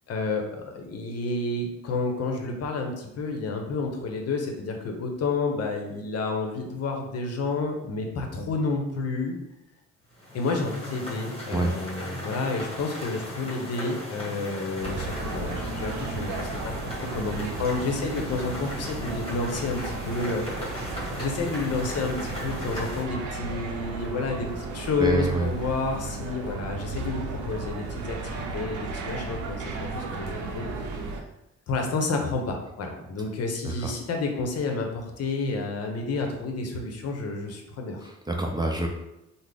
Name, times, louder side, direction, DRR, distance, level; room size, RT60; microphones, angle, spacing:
voice 1, 0.1-9.4 10.3-16.5 17.1-20.4 21.1-30.7 31.7-38.1, left 3 dB, 55° left, 3 dB, 0.7 m, -30 dB
sound 1, 10.1-23.0, left 1 dB, 20° left, 1.4 m, -37 dB
sound 2, 14.8-31.2, right 3 dB, 80° right, 0.5 m, -35 dB
voice 2, 25.0-25.5 33.6-33.7 38.3-38.9, right 2 dB, 15° right, 1 dB, 0.4 m, -25 dB
3.7 x 2.1 x 3.3 m, 0.86 s
cardioid pair, 90°, 30 cm